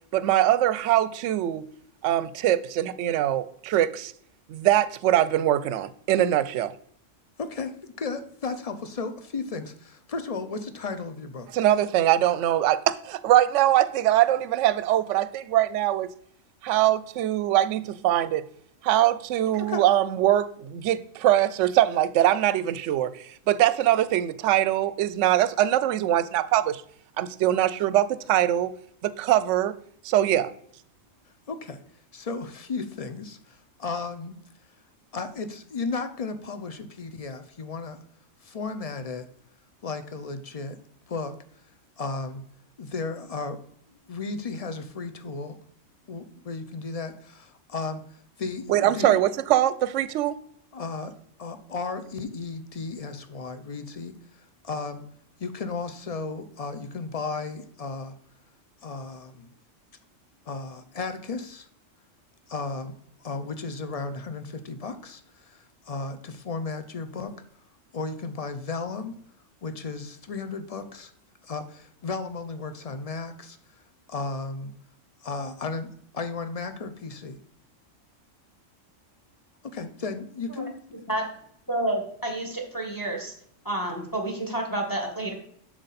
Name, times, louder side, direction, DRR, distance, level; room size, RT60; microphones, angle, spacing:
voice 1, 0.1-1.7 2.0-4.1 4.5-6.7 11.5-16.1 16.6-18.4 18.8-26.8 27.2-28.7 29.0-29.8 30.0-30.5 48.7-50.4, right 12 dB, 70° right, 0.9 m, -22 dB
voice 2, 7.4-11.5 19.7-19.8 31.5-31.8 32.1-34.4 35.1-38.0 38.4-39.3 39.8-40.8 41.1-41.3 42.0-42.4 42.8-43.6 43.9-45.6 46.1-49.2 50.7-51.1 51.4-55.0 55.4-58.1 58.8-59.5 60.5-61.7 62.5-62.9 63.2-67.3 67.9-69.2 69.6-71.1 71.4-73.8 74.1-74.7 75.2-77.4 79.6-81.0, left 4 dB, 40° left, 0.6 m, -34 dB
voice 3, 81.7-83.3 83.6-85.3, right 1 dB, 15° left, 1.4 m, -29 dB
7.7 x 6.4 x 4.1 m
omnidirectional pair, 1.3 m